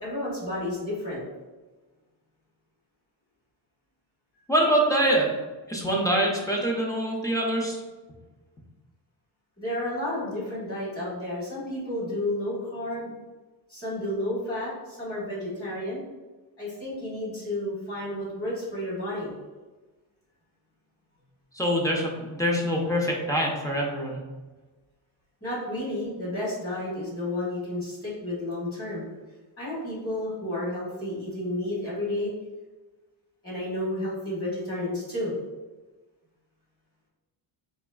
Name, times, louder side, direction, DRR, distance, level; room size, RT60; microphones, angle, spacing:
voice 1, 0.0-1.2 9.6-13.1 13.7-16.0 16.6-19.3 25.4-29.1 29.6-32.3 33.4-35.3, left 1 dB, 30° left, -7 dB, 1.4 m, -31 dB
voice 2, 4.5-5.3 5.7-7.8 21.5-24.2, right 1 dB, 10° left, -2 dB, 0.4 m, -24 dB
4.2 x 3.0 x 2.3 m, 1.2 s
wide cardioid pair, 155°, 48 cm